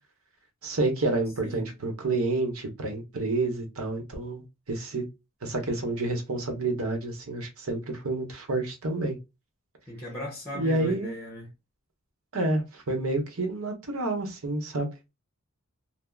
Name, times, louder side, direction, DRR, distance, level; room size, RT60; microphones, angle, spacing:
voice 1, 0.6-4.4 4.7-5.0 5.4-9.2 10.5-11.1 12.3-14.9, right 2 dB, 75° right, 0.9 m, -29 dB
voice 2, 9.9-11.5, left 1 dB, 10° left, 0.8 m, -37 dB
3.4 x 2.0 x 2.3 m
head